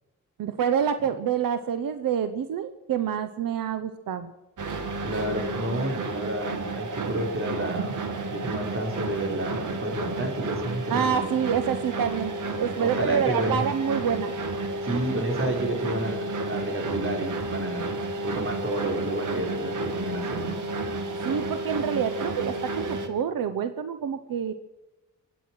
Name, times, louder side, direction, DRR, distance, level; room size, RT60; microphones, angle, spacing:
voice 1, 0.4-4.3 10.9-12.3 12.6-14.3 21.2-24.5, right 8 dB, 85° right, 11 dB, 1.0 m, -27 dB
sound 1, 4.6-23.1, right 2 dB, 65° right, 2.3 m, -31 dB
voice 2, 5.0-8.0 8.3-11.2 12.8-13.6 14.8-17.9 18.2-20.6, right 1 dB, 40° right, 1 dB, 5.1 m, -30 dB
24.0 x 9.3 x 6.2 m, 1.1 s
cardioid pair, 75°, 33 cm